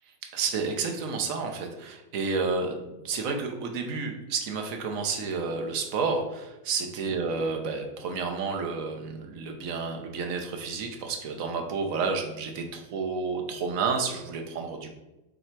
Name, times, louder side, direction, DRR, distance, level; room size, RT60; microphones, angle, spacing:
voice 1, 0.3-14.9, right 4 dB, 55° right, 3 dB, 1.2 m, -30 dB
6.6 x 3.9 x 4.6 m, 0.96 s
omnidirectional pair, 1.9 m